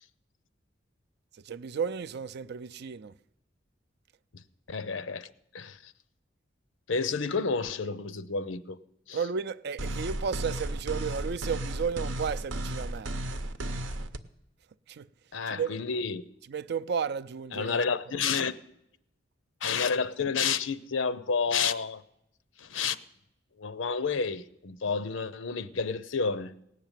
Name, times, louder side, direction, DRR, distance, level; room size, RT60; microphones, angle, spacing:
voice 1, 1.3-3.1 9.1-13.1 14.9-15.1 15.5-15.7 16.5-17.9, right 6 dB, 60° right, 0.4 m, -33 dB
voice 2, 4.7-5.9 6.9-8.8 9.1-9.2 15.3-16.2 17.5-18.5 19.6-22.0 22.6-23.0 23.6-26.5, left 5 dB, 85° left, 0.7 m, -30 dB
sound 1, 9.8-14.2, right 1 dB, 75° right, 0.8 m, -34 dB
17.5 x 6.7 x 9.0 m
head